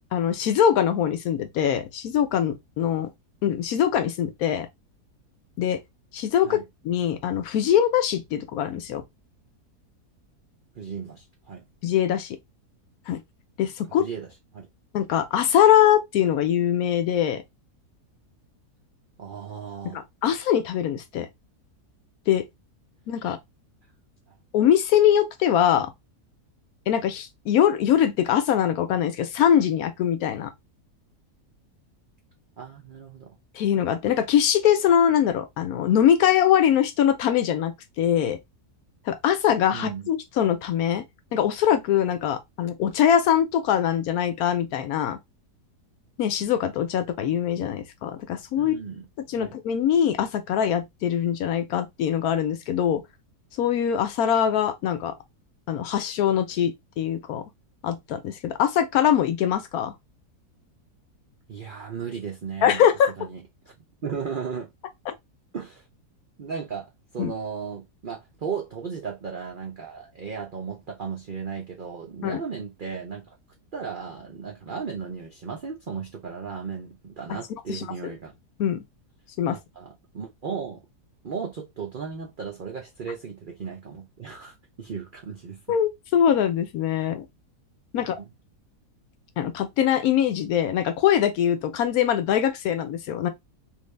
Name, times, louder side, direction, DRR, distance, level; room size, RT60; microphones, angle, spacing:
voice 1, 0.0-3.1 3.4-4.7 5.6-5.8 6.1-6.6 6.8-9.0 11.8-12.4 13.1-13.2 13.6-14.0 14.9-17.4 19.8-21.3 22.3-22.5 23.1-23.4 24.5-25.9 26.9-30.5 33.5-38.4 39.1-41.0 41.3-45.2 46.2-48.8 49.3-53.0 53.6-55.1 55.7-57.4 57.8-59.9 62.6-63.1 67.2-67.3 72.2-72.4 77.7-77.8 78.6-78.8 79.4-79.6 85.7-87.2 87.9-88.1 89.4-93.3, left 9 dB, 70° left, 1.0 m, -22 dB
voice 2, 10.8-11.6 13.9-14.3 14.5-14.7 19.2-20.0 24.3-24.4 32.6-33.3 39.7-40.1 48.6-49.1 49.4-49.6 61.5-62.8 63.2-63.7 64.0-64.7 65.5-65.8 66.4-73.4 73.7-78.4 79.5-80.8 81.2-85.8 87.0-87.2 87.9-88.3, right 6 dB, 65° right, 0.5 m, -35 dB
3.2 x 2.6 x 3.2 m
omnidirectional pair, 1.7 m